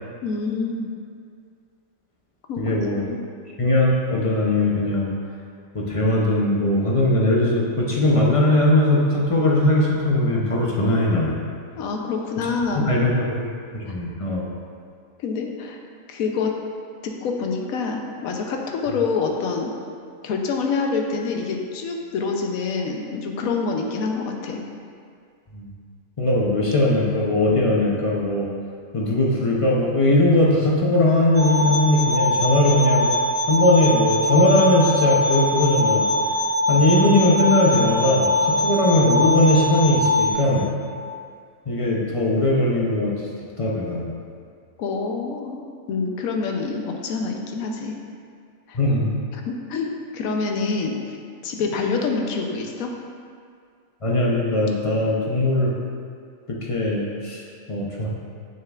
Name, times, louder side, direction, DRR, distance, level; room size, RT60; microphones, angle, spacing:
voice 1, 0.2-0.9 2.5-3.2 11.8-12.9 15.2-15.8 16.1-16.6 17.0-19.7 20.2-24.6 44.8-45.6 45.9-48.0 48.7-48.8 49.5-51.0 51.4-52.9, left 4 dB, 80° left, 2 dB, 1.1 m, -26 dB
voice 2, 2.6-3.1 3.6-5.1 5.7-11.4 12.9-13.5 13.7-14.5 25.5-25.7 26.2-28.5 28.9-33.1 33.5-36.1 36.7-40.7 41.7-43.1 43.6-44.1 48.7-49.2 54.0-55.7 56.5-57.4 57.7-58.1, left 1 dB, 40° left, -4 dB, 0.5 m, -19 dB
sound 1, 31.3-40.3, left 1 dB, 30° right, 0.9 m, -22 dB
6.6 x 6.5 x 2.4 m, 2.2 s
omnidirectional pair, 1.5 m